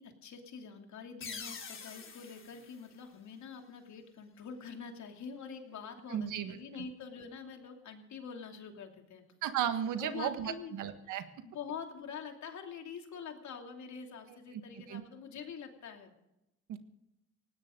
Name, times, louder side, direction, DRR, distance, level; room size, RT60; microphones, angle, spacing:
voice 1, 0.0-9.2 10.0-10.8 11.0-11.1 11.4-16.1, left 6 dB, 70° left, 4 dB, 2.9 m, -45 dB
sound 1, 1.2-3.8, left 5 dB, 40° left, 3.1 m, -47 dB
voice 2, 6.1-6.6 9.4-11.2 14.5-14.6 14.9-15.0 16.7-16.8, right 9 dB, 85° right, 9 dB, 1.7 m, -34 dB
19.0 x 17.5 x 3.9 m, 0.88 s
cardioid pair, 90°, 30 cm